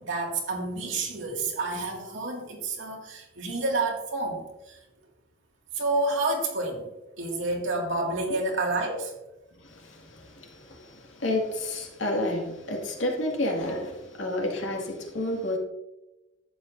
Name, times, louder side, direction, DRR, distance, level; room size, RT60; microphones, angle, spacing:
voice 1, 0.0-4.8 5.7-6.9 7.2-9.1, right 2 dB, 80° right, 2.2 m, -29 dB
voice 2, 9.6-15.6, left 1 dB, 85° left, 2.1 m, -30 dB
11.5 x 8.3 x 2.7 m
head